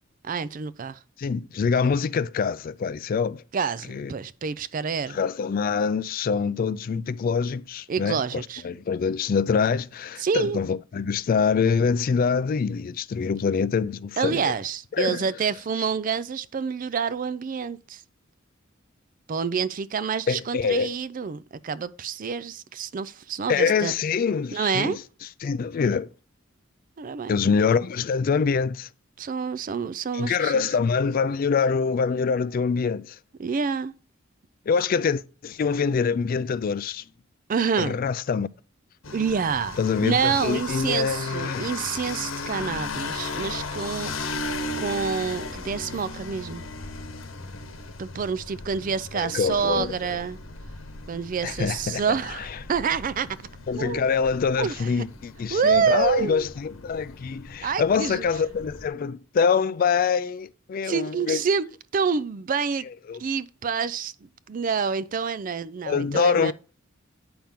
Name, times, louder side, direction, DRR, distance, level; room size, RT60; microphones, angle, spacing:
voice 1, 0.2-1.0 3.5-5.2 7.9-8.6 10.2-10.6 14.2-18.0 19.3-23.9 24.5-25.0 27.0-27.4 29.2-30.7 33.4-33.9 37.5-38.0 39.1-44.1 44.7-46.6 48.0-50.4 51.1-53.4 53.7-54.1 54.6-54.7 55.5-56.5 57.6-58.2 60.8-62.9 63.2-66.5, right 6 dB, 40° right, 0.4 m, -27 dB
voice 2, 1.2-3.4 3.9-4.1 5.1-14.5 14.9-15.3 20.3-21.0 23.5-25.0 25.4-26.1 27.3-28.9 30.1-33.2 34.7-37.0 37.8-38.5 39.8-41.7 49.1-49.9 51.4-52.0 52.4-52.5 53.7-61.4 63.1-63.2 65.8-66.5, left 5 dB, 45° left, 0.3 m, -25 dB
sound 1, 39.0-58.9, left 3 dB, 75° left, 1.0 m, -36 dB
8.7 x 5.8 x 3.6 m
head